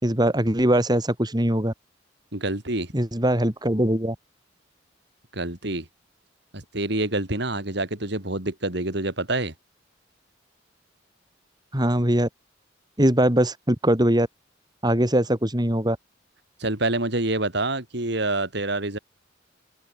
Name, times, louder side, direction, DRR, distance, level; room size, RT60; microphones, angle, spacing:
voice 1, 0.0-1.7 2.9-4.2 11.7-12.3 13.0-14.3 14.8-16.0, right 1 dB, 20° right, 3.7 m, -21 dB
voice 2, 2.3-2.9 5.3-5.9 6.5-9.5 16.6-19.0, right 2 dB, 65° right, 4.3 m, -27 dB
open air
head